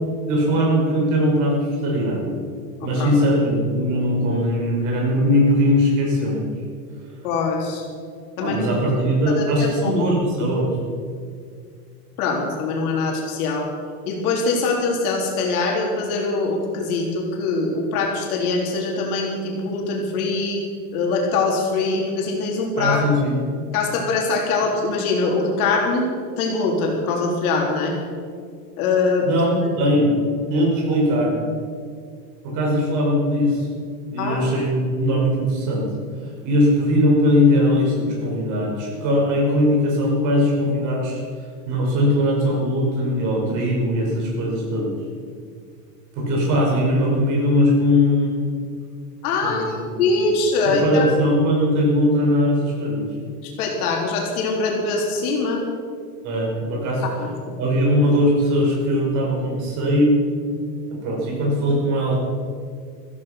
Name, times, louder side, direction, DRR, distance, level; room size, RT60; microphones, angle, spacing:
voice 1, 0.3-2.3 2.8-6.4 8.4-10.7 22.8-23.4 29.2-30.1 30.5-31.3 32.4-33.7 34.1-35.9 36.4-41.2 41.7-44.9 46.1-48.4 49.4-49.6 49.9-50.3 50.7-53.1 56.2-57.0 57.6-60.2 61.0-62.1, equal, 40° right, -2 dB, 5.6 m, -20 dB
voice 2, 7.2-7.8 8.4-8.6 9.3-10.1 12.2-13.7 14.1-20.6 20.9-23.0 23.7-26.1 26.4-28.0 28.8-29.3 29.6-29.7 34.2-34.5 49.2-49.7 50.0-51.1 53.4-55.6 57.2-57.6, left 3 dB, 65° left, -1 dB, 3.9 m, -23 dB
15.0 x 15.0 x 5.9 m, 2.1 s
supercardioid pair, 165°, 47 cm